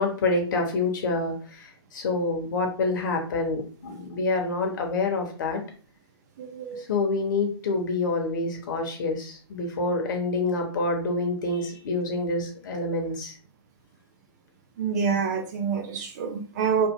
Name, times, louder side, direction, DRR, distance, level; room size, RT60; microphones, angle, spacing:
voice 1, 0.0-5.6 6.8-13.3, left 3 dB, 45° left, 2 dB, 0.9 m, -27 dB
voice 2, 6.4-6.8 14.8-16.9, right 6 dB, 40° right, 4 dB, 0.6 m, -27 dB
3.0 x 2.1 x 3.6 m, 0.40 s
figure-of-eight pair, 120°, 14 cm